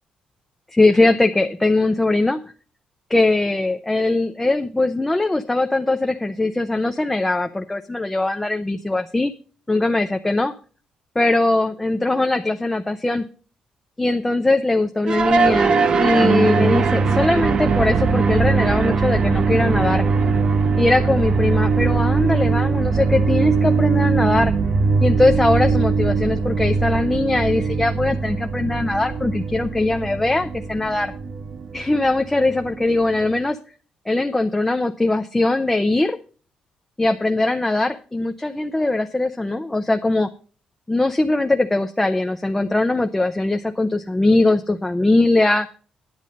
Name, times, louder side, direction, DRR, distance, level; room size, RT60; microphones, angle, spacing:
voice 1, 0.7-2.4 3.1-9.3 9.7-10.5 11.2-13.2 14.0-20.0 20.8-24.5 25.0-31.1 31.7-33.6 34.1-36.2 37.0-40.3 40.9-45.7, left 2 dB, 10° left, 6 dB, 0.6 m, -20 dB
sound 1, 15.1-33.4, right 4 dB, 40° right, 0.9 m, -20 dB
10.5 x 8.8 x 5.2 m, 0.39 s
cardioid pair, 160°, 2 cm